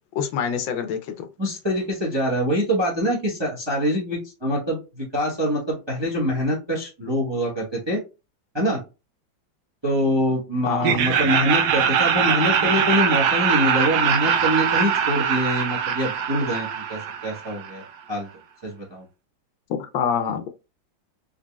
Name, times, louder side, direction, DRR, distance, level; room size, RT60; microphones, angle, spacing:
voice 1, 0.2-1.3 10.7-11.0 19.8-20.5, left 7 dB, 75° left, 1.3 m, -26 dB
voice 2, 1.4-8.0 8.5-8.8 9.8-18.3 18.6-19.0, equal, 25° right, 0.6 m, -24 dB
Laughter, 10.8-17.8, right 7 dB, 75° right, 1.0 m, -22 dB
3.9 x 3.3 x 2.2 m
omnidirectional pair, 2.2 m